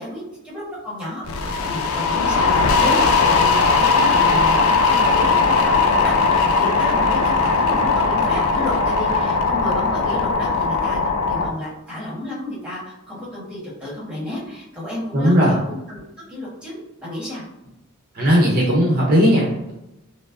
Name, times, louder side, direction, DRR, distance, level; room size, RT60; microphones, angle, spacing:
voice 1, 0.0-16.0 16.3-17.4, left 1 dB, 5° right, -6 dB, 1.2 m, -31 dB
sound 1, 1.3-11.5, left 4 dB, 85° left, 0.5 m, -18 dB
voice 2, 15.1-15.5 18.1-19.7, equal, 45° right, -3 dB, 0.7 m, -17 dB
5.4 x 2.0 x 2.5 m, 0.90 s
head